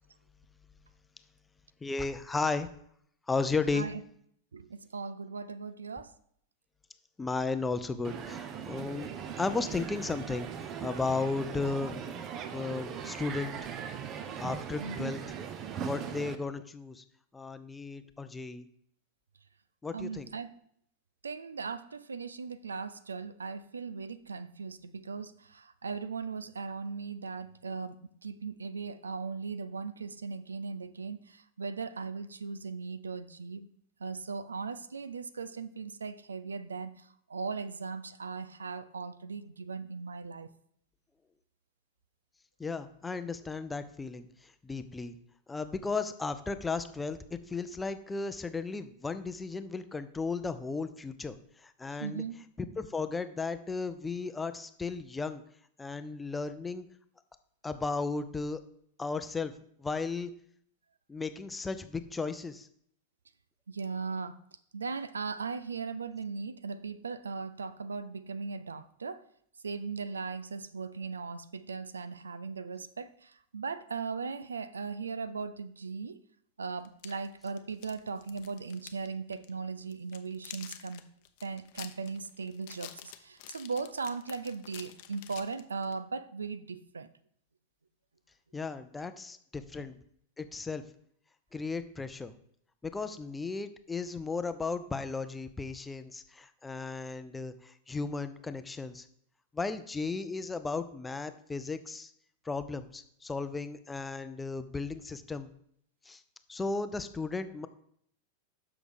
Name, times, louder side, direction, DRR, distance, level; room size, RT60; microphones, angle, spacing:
voice 1, 1.8-2.7 3.3-3.9 7.2-9.1 9.4-12.0 12.5-13.6 14.4-15.2 15.8-17.0 17.3-18.7 19.8-20.3 42.6-45.2 45.5-51.4 51.6-52.2 52.6-55.4 55.8-56.9 57.6-58.6 59.0-59.5 59.8-60.3 61.1-62.7 88.5-90.0 90.4-90.8 91.5-92.3 92.8-99.0 99.5-102.1 102.4-105.5 106.1-106.2 106.5-107.7, left 4 dB, 10° left, 0.6 m, -35 dB
voice 2, 4.5-6.1 14.8-15.1 19.9-20.5 21.2-33.7 34.0-40.5 52.0-52.4 63.7-64.4 64.7-69.2 69.6-76.2 76.6-81.1 81.4-87.1 89.0-89.1 89.8-89.9, right 4 dB, 75° right, 0.4 m, -38 dB
Crowd, 8.0-16.4, right 8 dB, 35° right, 0.7 m, -39 dB
sound 1, 76.8-79.1 79.3-79.5 79.9-86.0, left 13 dB, 50° left, 0.7 m, -48 dB
8.0 x 6.0 x 5.0 m
figure-of-eight pair, 90°, 0 cm